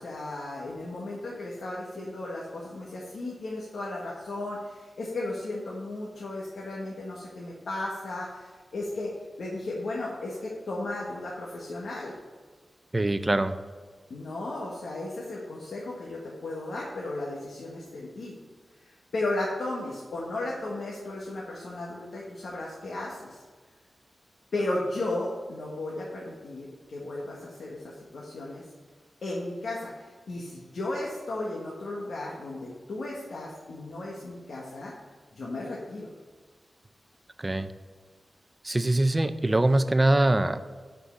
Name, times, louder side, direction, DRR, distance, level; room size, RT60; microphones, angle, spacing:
voice 1, 0.0-12.1 14.1-18.4 18.8-23.4 24.5-28.6 29.2-34.9 35.3-36.1, left 2 dB, 80° left, -4 dB, 1.5 m, -35 dB
voice 2, 12.9-13.6 37.4-37.7 38.6-40.6, right 1 dB, 20° right, 10 dB, 0.5 m, -23 dB
6.4 x 5.5 x 7.1 m, 1.5 s
wide cardioid pair, 110°, 0 cm